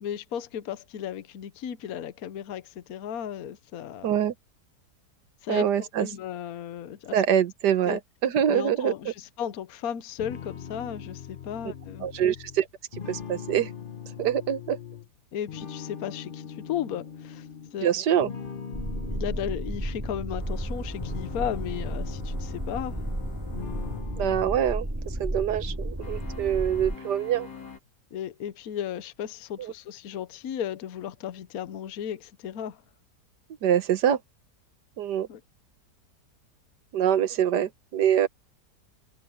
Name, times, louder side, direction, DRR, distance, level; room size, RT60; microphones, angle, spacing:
voice 1, 0.0-4.1 5.4-7.2 7.9-8.0 8.5-12.1 15.3-18.3 18.9-23.0 28.1-32.8 35.3-35.4, left 9 dB, 65° left, 1.3 m, -35 dB
voice 2, 4.0-4.3 5.5-6.1 7.1-8.9 12.0-12.7 13.1-13.7 14.2-14.8 17.8-18.3 24.2-24.9 25.2-27.5 29.6-29.7 33.6-34.2 35.0-35.3 36.9-38.3, right 9 dB, 80° right, 1.6 m, -24 dB
sound 1, 10.2-15.1 15.5-17.8 18.2-20.3 20.8-23.2 23.5-24.5, left 7 dB, 40° left, 0.8 m, -40 dB
sound 2, 18.7-27.0, right 1 dB, 10° right, 2.1 m, -33 dB
sound 3, 20.4-24.1 26.0-27.8, left 4 dB, 85° left, 3.2 m, -44 dB
omnidirectional pair, 1.8 m